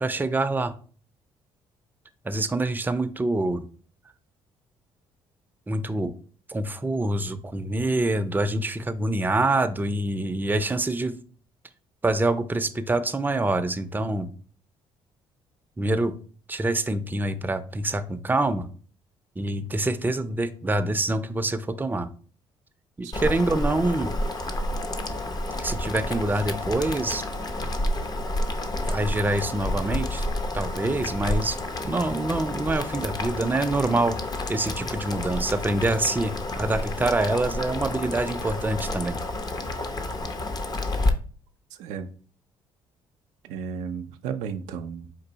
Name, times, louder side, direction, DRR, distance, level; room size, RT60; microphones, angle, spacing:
voice 1, 0.0-0.7 2.2-3.6 5.7-6.1 6.5-11.2 12.0-14.3 15.8-16.1 16.5-18.7 19.4-22.1 23.0-24.1 25.6-27.2 28.8-30.2 30.5-31.6 31.8-34.2 34.5-39.2, right 2 dB, 15° right, 0.5 m, -26 dB
Boiling, 23.1-41.1, left 1 dB, 35° left, 0.7 m, -30 dB
voice 2, 41.8-42.1 43.4-45.1, right 7 dB, 80° right, 0.4 m, -33 dB
4.5 x 2.6 x 3.9 m
supercardioid pair, 60°, 12 cm